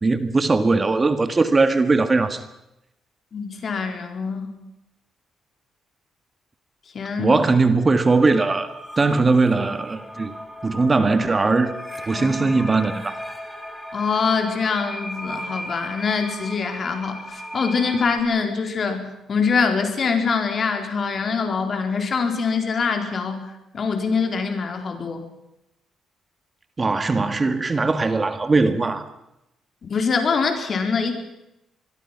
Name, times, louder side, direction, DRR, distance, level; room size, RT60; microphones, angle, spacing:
voice 1, 0.0-2.4 7.2-8.7 9.0-10.3 10.6-11.7 12.1-13.1 26.8-29.1, right 3 dB, 30° right, 1.8 m, -19 dB
voice 2, 3.3-4.5 6.9-7.4 12.1-12.7 13.9-23.4 23.7-25.2 29.8-31.1, left 5 dB, 45° left, 4.2 m, -24 dB
sound 1, 7.9-18.2, equal, 5° left, 3.7 m, -36 dB
25.0 x 21.5 x 6.0 m
cardioid pair, 90°, 0 cm